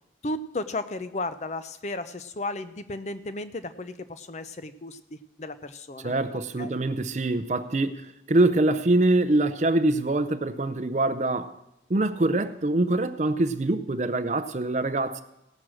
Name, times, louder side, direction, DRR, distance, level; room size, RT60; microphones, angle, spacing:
voice 1, 0.2-6.1 6.6-6.8, left 2 dB, 40° left, 0.5 m, -34 dB
voice 2, 6.0-11.6 11.9-15.2, right 2 dB, 40° right, 0.5 m, -24 dB
17.0 x 6.2 x 6.2 m
head